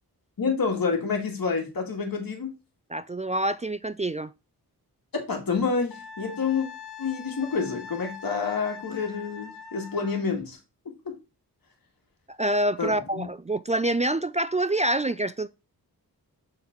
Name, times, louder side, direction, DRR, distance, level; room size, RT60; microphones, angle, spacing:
voice 1, 0.4-2.5 5.1-6.7 7.0-10.6 11.1-11.2 12.8-13.3, left 5 dB, 60° left, 2.1 m, -28 dB
voice 2, 2.9-4.3 12.3-15.5, right 1 dB, 20° right, 0.3 m, -26 dB
Wind instrument woodwind instrument, 5.9-10.2, left 6 dB, 90° left, 1.2 m, -43 dB
6.9 x 4.0 x 4.5 m
wide cardioid pair, 85°, 38 cm